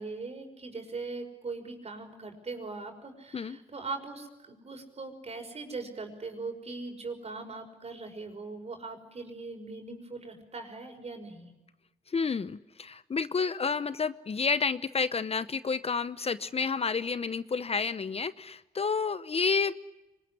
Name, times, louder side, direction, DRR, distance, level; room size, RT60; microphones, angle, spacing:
voice 1, 0.0-11.5, right 3 dB, 40° right, 5 dB, 5.8 m, -40 dB
voice 2, 12.1-19.7, left 5 dB, 40° left, 14 dB, 0.8 m, -30 dB
24.5 x 20.5 x 9.8 m, 1.0 s
cardioid pair, 65°, 16 cm